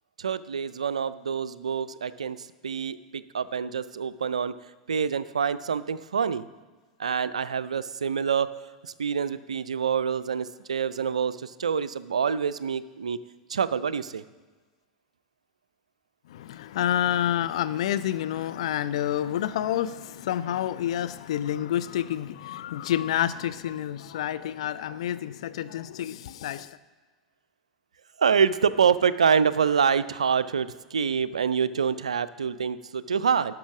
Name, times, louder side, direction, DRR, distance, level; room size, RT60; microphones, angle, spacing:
voice 1, 0.2-4.6 4.9-6.5 7.0-8.5 8.8-13.2 13.5-14.2 28.2-33.6, right 6 dB, 75° right, 16 dB, 0.4 m, -26 dB
voice 2, 16.3-26.8, left 11 dB, 60° left, 15 dB, 0.3 m, -28 dB
11.5 x 6.0 x 6.0 m, 1.3 s
figure-of-eight pair, 90°, 4 cm